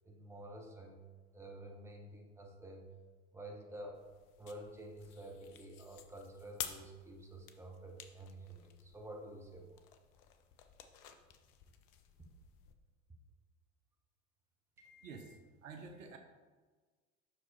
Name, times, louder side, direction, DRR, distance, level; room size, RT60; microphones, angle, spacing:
voice 1, 0.0-1.0 1.3-2.9 3.3-4.0 4.4-9.8 14.8-15.3, right 1 dB, 5° right, 0 dB, 1.1 m, -50 dB
sound 1, 3.9-12.8, left 10 dB, 45° left, 0.7 m, -52 dB
voice 2, 15.0-16.2, right 4 dB, 70° right, 4 dB, 0.9 m, -50 dB
6.0 x 5.0 x 4.2 m, 1.4 s
figure-of-eight pair, 75°, 41 cm